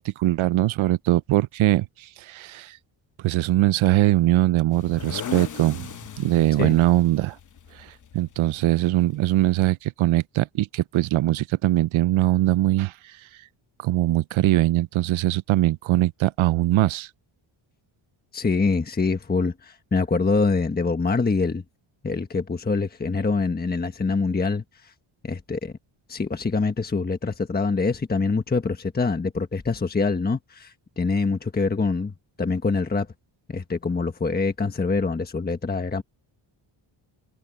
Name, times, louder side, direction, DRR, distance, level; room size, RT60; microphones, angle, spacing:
voice 1, 0.0-2.8 3.2-5.9 6.2-7.4 7.7-13.2 13.8-17.1, right 15 dB, 75° right, 0.7 m, -21 dB
sound 1, 4.7-9.7, left 7 dB, 40° left, 1.0 m, -39 dB
voice 2, 18.3-21.6 22.0-24.9 25.2-25.7 26.1-33.1 33.5-36.0, left 4 dB, 20° left, 1.3 m, -25 dB
cardioid pair, 135°, 49 cm